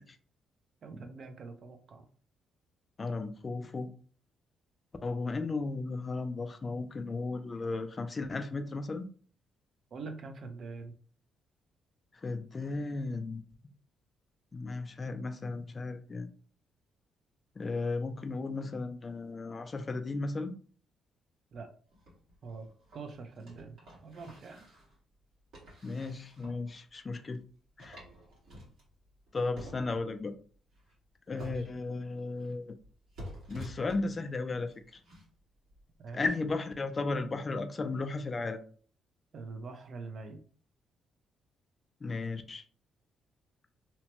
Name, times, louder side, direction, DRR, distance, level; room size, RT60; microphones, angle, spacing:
voice 1, 0.8-2.0 9.9-10.9 21.5-21.7 22.4-22.7 22.9-23.8 24.0-24.7 31.3-31.7 36.0-36.2 39.3-40.4, right 4 dB, 55° right, 0.5 m, -44 dB
voice 2, 3.0-3.9 5.0-9.1 12.2-13.4 14.5-16.3 17.6-20.5 25.8-27.4 27.8-28.0 29.3-30.3 31.3-32.7 33.5-34.7 36.1-38.6 42.0-42.6, left 3 dB, 30° left, 0.3 m, -35 dB
sound 1, 21.9-25.0 25.5-26.6 27.1-27.2 27.4-27.5 27.8-29.3 29.6-30.2 30.7-31.0 31.4-32.5 32.8-34.3 34.7-35.3 35.7-35.8, equal, 75° right, 1.5 m, -50 dB
2.9 x 2.1 x 2.9 m
cardioid pair, 90°, 0 cm